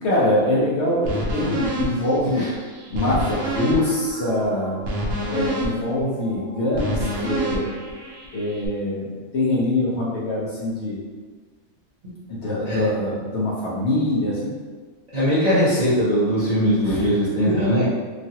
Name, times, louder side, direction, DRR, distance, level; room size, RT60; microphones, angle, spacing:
voice 1, 0.0-2.5 2.9-4.9 5.3-7.7 8.3-11.0 12.3-14.5 16.8-17.0 17.5-17.9, left 1 dB, 60° left, -6 dB, 0.8 m, -24 dB
sound 1, 1.1-8.7, right 1 dB, 70° right, 1.0 m, -28 dB
voice 2, 15.1-17.9, equal, 45° right, -12 dB, 0.5 m, -20 dB
3.1 x 2.4 x 2.7 m, 1.5 s
omnidirectional pair, 1.5 m